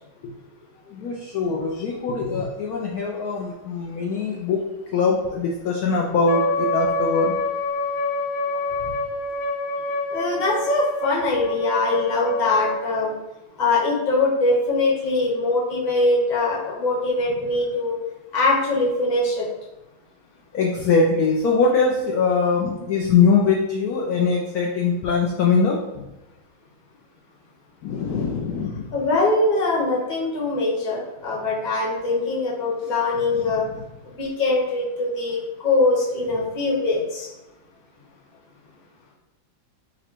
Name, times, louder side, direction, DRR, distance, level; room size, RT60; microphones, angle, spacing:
voice 1, 0.9-4.7 4.9-7.4 8.8-8.9 20.5-26.1 27.8-28.9 33.4-33.8, left 4 dB, 70° left, -2 dB, 0.9 m, -22 dB
Wind instrument woodwind instrument, 6.3-12.8, left 2 dB, 85° left, 1.6 m, -27 dB
voice 2, 10.1-13.1 13.6-17.9 18.3-19.4 28.9-33.6 34.2-37.3, left 2 dB, 30° left, -4 dB, 0.9 m, -22 dB
5.0 x 2.2 x 4.4 m, 1.0 s
omnidirectional pair, 2.2 m